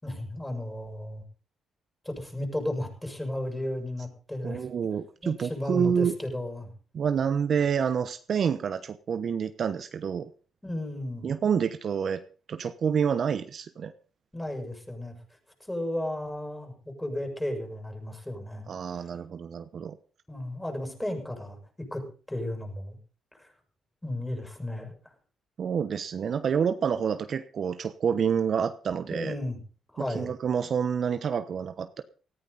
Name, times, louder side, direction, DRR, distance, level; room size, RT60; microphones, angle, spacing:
voice 1, 0.0-1.2 2.0-4.6 5.2-6.7 10.6-11.3 14.3-15.1 15.7-18.7 20.3-22.0 22.3-23.0 23.3-23.5 24.0-24.9 29.1-29.6 29.9-30.3, left 1 dB, 10° left, 3 dB, 6.6 m, -34 dB
voice 2, 4.4-6.1 6.9-10.3 11.2-12.2 12.5-13.9 18.7-20.0 25.6-29.3 30.0-32.0, right 7 dB, 55° right, 10 dB, 1.0 m, -28 dB
18.5 x 14.5 x 4.1 m, 0.38 s
cardioid pair, 90°, 0 cm